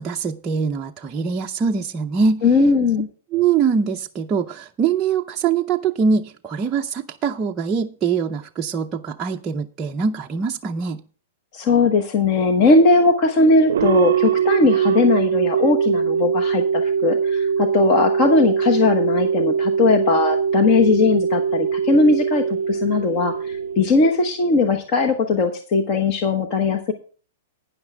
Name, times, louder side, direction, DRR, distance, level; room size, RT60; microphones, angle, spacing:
voice 1, 0.0-2.4 3.3-11.0, right 6 dB, 15° right, 0 dB, 0.5 m, -23 dB
voice 2, 2.4-3.1 11.5-26.9, left 3 dB, 35° left, 5 dB, 1.1 m, -19 dB
sound 1, 13.7-24.4, right 7 dB, 85° right, 0.4 m, -22 dB
12.5 x 9.6 x 3.4 m, 0.40 s
supercardioid pair, 165°, 0 cm